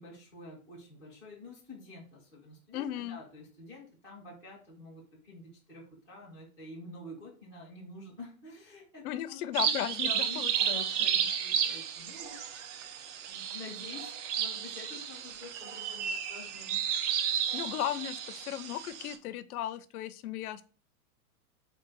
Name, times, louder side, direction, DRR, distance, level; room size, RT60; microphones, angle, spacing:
voice 1, 0.0-9.7 10.0-12.4 12.8-13.0 13.3-16.9, left 2 dB, 10° right, -4 dB, 0.3 m, -48 dB
voice 2, 2.7-3.2 9.0-10.8 17.5-20.6, left 12 dB, 70° left, 14 dB, 0.5 m, -36 dB
sound 1, 9.5-19.2, right 8 dB, 55° right, 0.6 m, -33 dB
3.8 x 2.4 x 3.7 m, 0.39 s
supercardioid pair, 145°, 45 cm